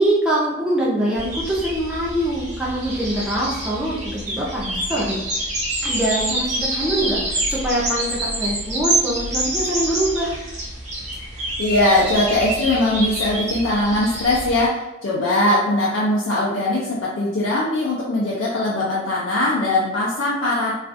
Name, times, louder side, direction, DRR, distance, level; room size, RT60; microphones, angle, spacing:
voice 1, 0.0-5.2 5.8-10.4, right 1 dB, 5° right, -6 dB, 0.4 m, -23 dB
sound 1, 1.1-14.7, right 1 dB, 35° right, 0.8 m, -27 dB
voice 2, 11.3-20.7, left 1 dB, 80° left, -5 dB, 0.5 m, -21 dB
2.4 x 2.4 x 2.4 m, 1.0 s
head